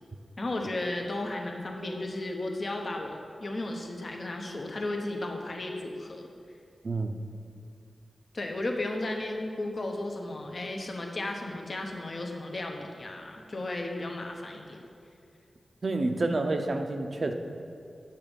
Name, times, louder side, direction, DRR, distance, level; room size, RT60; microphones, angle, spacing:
voice 1, 0.4-6.3 8.3-14.8, left 2 dB, 50° left, 2 dB, 1.0 m, -34 dB
voice 2, 6.8-7.2 15.8-17.3, right 2 dB, 55° right, 5 dB, 0.7 m, -28 dB
9.2 x 7.1 x 5.3 m, 2.4 s
wide cardioid pair, 75°, 0 cm